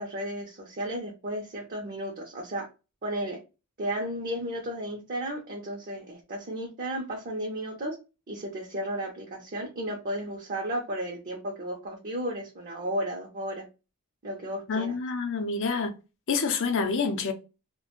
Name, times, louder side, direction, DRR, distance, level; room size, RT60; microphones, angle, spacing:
voice 1, 0.0-2.7 3.0-3.4 3.8-8.0 8.3-13.6 14.2-14.9, right 1 dB, 40° right, 0.5 m, -34 dB
voice 2, 14.7-15.9 16.3-17.3, left 4 dB, 60° left, 0.5 m, -27 dB
2.4 x 2.1 x 2.9 m
head